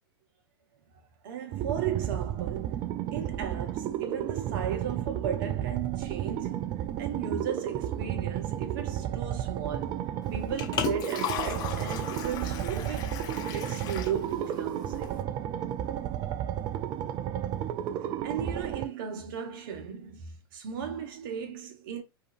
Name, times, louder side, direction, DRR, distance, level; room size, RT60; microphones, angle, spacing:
voice 1, 1.2-2.8 3.1-6.7 7.0-13.2 13.5-15.2 18.2-22.0, right 8 dB, 55° right, 0.8 m, -36 dB
sound 1, 1.5-18.9, right 11 dB, 30° right, 0.3 m, -33 dB
Liquid, 10.2-15.2, left 9 dB, 30° left, 0.5 m, -36 dB
2.6 x 2.4 x 2.5 m
hypercardioid pair, 105°, 13 cm